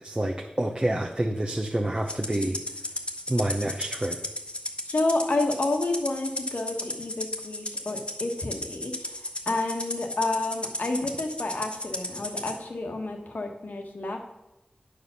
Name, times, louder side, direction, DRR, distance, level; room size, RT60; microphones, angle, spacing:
voice 1, 0.0-2.6 3.3-4.2, right 1 dB, 30° right, 0 dB, 0.8 m, -28 dB
Rattle (instrument), 2.1-12.6, left 1 dB, 35° left, 1.3 m, -34 dB
voice 2, 4.8-9.2 9.4-14.2, left 2 dB, 75° left, 3 dB, 1.4 m, -29 dB
9.2 x 4.9 x 7.0 m, 0.94 s
wide cardioid pair, 50°, 3 cm